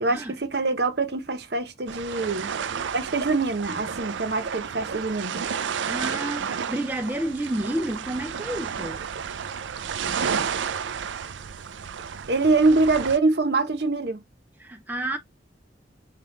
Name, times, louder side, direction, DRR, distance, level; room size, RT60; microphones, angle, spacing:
voice 1, 0.0-2.5 2.9-5.4 12.3-14.2, right 3 dB, 60° right, 0.9 m, -24 dB
sound 1, 1.9-13.2, right 7 dB, 80° right, 0.5 m, -31 dB
voice 2, 5.8-9.0 14.6-15.2, right 1 dB, 10° right, 0.5 m, -30 dB
5.2 x 2.4 x 3.6 m
head